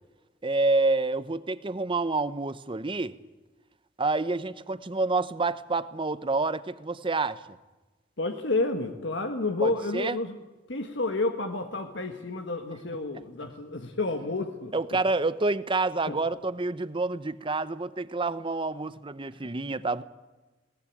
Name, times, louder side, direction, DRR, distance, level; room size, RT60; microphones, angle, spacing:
voice 1, 0.4-3.2 4.0-7.4 9.6-10.2 14.7-20.0, right 3 dB, 30° right, 15 dB, 0.8 m, -28 dB
voice 2, 8.2-10.4 10.7-15.0 16.1-16.2, left 2 dB, 75° left, 6 dB, 1.5 m, -30 dB
21.0 x 18.5 x 8.6 m, 1.2 s
head